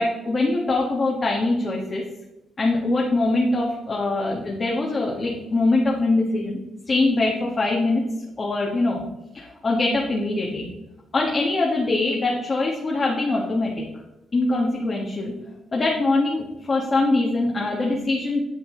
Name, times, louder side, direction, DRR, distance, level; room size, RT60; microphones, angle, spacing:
voice 1, 0.0-2.0 2.6-6.6 6.9-8.0 8.4-9.0 9.3-10.7 11.1-13.7 14.3-15.3 15.7-18.4, left 2 dB, 35° left, -2 dB, 1.5 m, -23 dB
9.6 x 7.1 x 3.8 m, 0.96 s
cardioid pair, 120°, 0 cm